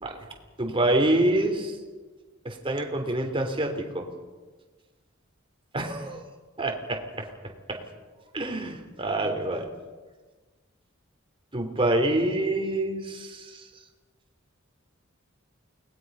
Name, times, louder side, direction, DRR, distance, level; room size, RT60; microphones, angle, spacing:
voice 1, 0.6-1.8 2.5-4.1 5.7-6.2 6.6-7.0 7.7-7.8 8.3-9.7 11.5-13.7, right 1 dB, 25° right, 3 dB, 3.3 m, -26 dB
29.5 x 20.5 x 5.6 m, 1.4 s
head